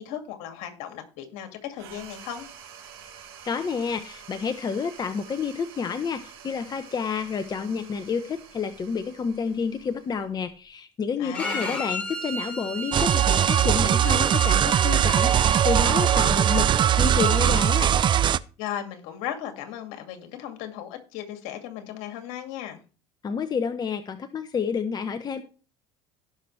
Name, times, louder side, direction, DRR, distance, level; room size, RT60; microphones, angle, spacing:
voice 1, 0.0-2.5 11.2-11.8 18.6-22.8, left 10 dB, 70° left, 6 dB, 2.3 m, -36 dB
sound 1, 1.7-10.6, right 8 dB, 90° right, 4.8 m, -48 dB
voice 2, 3.4-17.9 23.2-25.4, left 6 dB, 35° left, 9 dB, 1.0 m, -29 dB
Bowed string instrument, 11.3-17.6, right 1 dB, 10° left, 6.1 m, -34 dB
sound 2, 12.9-18.4, right 10 dB, 40° right, 0.5 m, -20 dB
17.5 x 6.1 x 3.3 m, 0.36 s
supercardioid pair, 80°, 12 cm